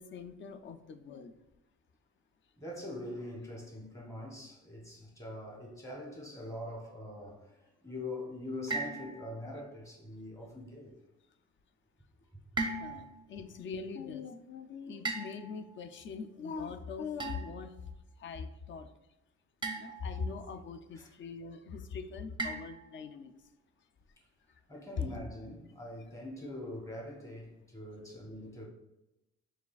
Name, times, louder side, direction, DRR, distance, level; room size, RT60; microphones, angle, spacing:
voice 1, 0.0-1.3 12.8-17.8 18.2-18.9 19.8-23.3, left 5 dB, 40° left, 0.4 m, -42 dB
voice 2, 2.6-7.6 7.8-10.9 21.0-21.1 24.7-28.7, left 1 dB, 10° left, 1.1 m, -43 dB
sound 1, 8.7-9.6 12.6-13.3 15.1-15.8 17.2-17.7 19.6-20.3 22.4-23.1, right 3 dB, 15° right, 0.5 m, -38 dB
4.7 x 3.2 x 2.4 m
cardioid pair, 90°, 30 cm